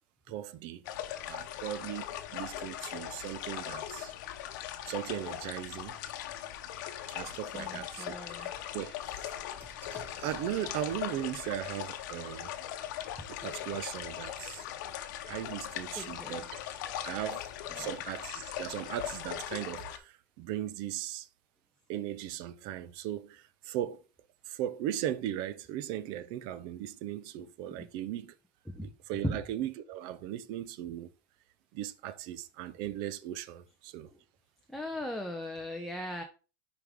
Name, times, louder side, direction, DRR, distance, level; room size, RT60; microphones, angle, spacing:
voice 1, 0.3-0.8 1.2-2.1 2.3-4.1 4.9-6.0 7.1-9.3 10.2-12.5 13.3-14.6 15.3-16.5 17.0-17.4 17.8-21.3 21.9-24.0 24.5-28.3 28.8-31.1 31.7-34.1, right 12 dB, 45° right, 0.6 m, -38 dB
sound 1, 0.8-20.0, left 11 dB, 60° left, 0.9 m, -40 dB
voice 2, 7.5-8.5 16.0-16.5 17.7-18.0 27.7-27.9 28.7-28.9 29.2-29.4 34.1-34.2 34.7-36.2, left 1 dB, ahead, 0.6 m, -38 dB
sound 2, 8.3-13.7 14.6-14.7 15.0-15.6, right 2 dB, 15° right, 1.6 m, -56 dB
6.7 x 5.0 x 3.6 m
supercardioid pair, 145°, 11 cm